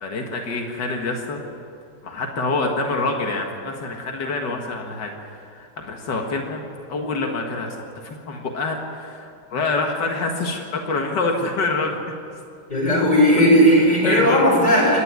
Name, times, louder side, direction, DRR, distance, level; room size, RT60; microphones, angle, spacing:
voice 1, 0.0-1.4 2.0-6.6 6.9-12.0 14.0-14.6, left 3 dB, 80° left, 2 dB, 2.3 m, -26 dB
voice 2, 12.7-15.0, equal, 25° left, -3 dB, 6.8 m, -16 dB
27.5 x 11.0 x 9.6 m, 2.4 s
omnidirectional pair, 1.9 m